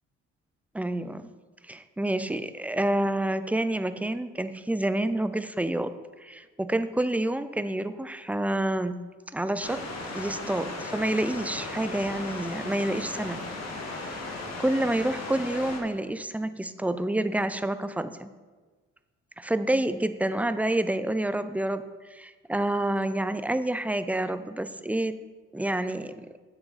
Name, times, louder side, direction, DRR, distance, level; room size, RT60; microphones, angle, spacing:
voice 1, 0.7-1.3 1.7-5.9 6.2-9.8 10.1-13.4 13.8-14.2 14.6-18.3 19.4-21.8 22.1-25.2 25.5-26.1, right 1 dB, 5° right, 11 dB, 0.4 m, -28 dB
Distant Waterfall - From Lookout, 9.6-15.8, left 2 dB, 60° left, 1.6 m, -36 dB
9.6 x 7.3 x 4.0 m, 1.4 s
cardioid pair, 90°, 30 cm